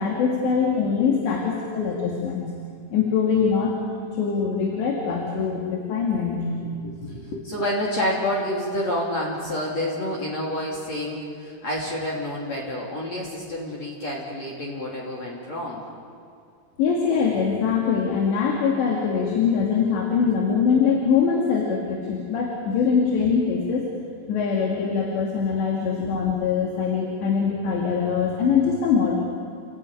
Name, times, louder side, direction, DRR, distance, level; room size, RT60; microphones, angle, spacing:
voice 1, 0.0-2.5 2.9-3.7 4.1-6.5 16.8-23.9 24.3-29.2, left 6 dB, 90° left, -1 dB, 4.5 m, -23 dB
voice 2, 6.6-15.8 25.9-26.2, left 1 dB, 40° left, -4 dB, 4.0 m, -29 dB
29.0 x 16.0 x 9.2 m, 2.3 s
omnidirectional pair, 4.9 m